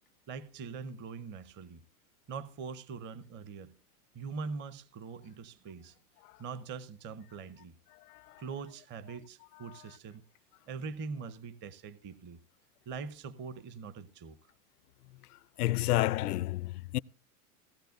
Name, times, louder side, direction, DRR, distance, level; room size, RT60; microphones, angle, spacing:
voice 1, 0.3-1.8 2.3-3.7 4.1-5.9 6.4-7.7 8.4-10.2 10.7-12.4 12.9-14.4, right 5 dB, 25° right, 0.7 m, -42 dB
voice 2, 7.9-8.4 15.6-17.0, left 16 dB, 85° left, 0.5 m, -30 dB
18.0 x 14.5 x 2.6 m
hypercardioid pair, 130°, 45 cm